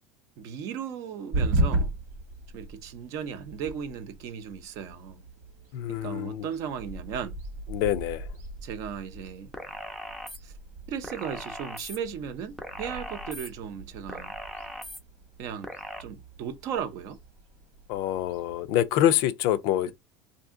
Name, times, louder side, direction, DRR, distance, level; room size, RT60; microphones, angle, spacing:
voice 1, 0.4-1.9 2.5-5.2 5.9-7.4 8.6-9.5 10.4-10.5 10.9-14.3 15.4-15.7 16.0-17.2, right 8 dB, 55° right, 0.6 m, -36 dB
sound 1, 1.3-19.2, right 2 dB, 85° right, 1.5 m, -36 dB
voice 2, 5.7-6.5 7.7-8.3 17.9-19.9, left 12 dB, 65° left, 0.4 m, -26 dB
sound 2, 9.5-10.4 11.0-12.0 12.6-13.5 14.1-15.0 15.6-16.0, equal, ahead, 0.5 m, -39 dB
2.7 x 2.6 x 3.6 m
cardioid pair, 150°, 7 cm